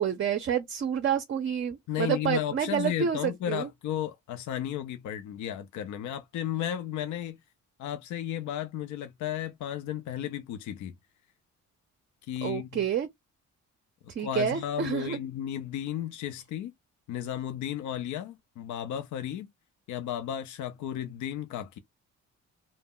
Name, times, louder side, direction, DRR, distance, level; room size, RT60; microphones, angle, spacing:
voice 1, 0.0-3.7 12.4-13.1 14.2-15.2, right 8 dB, 40° right, 0.5 m, -29 dB
voice 2, 1.9-7.4 7.8-11.0 12.3-12.8 14.2-16.7 17.1-19.5 19.9-21.8, left 11 dB, 70° left, 0.5 m, -34 dB
2.1 x 2.0 x 3.6 m
cardioid pair, 90°, 30 cm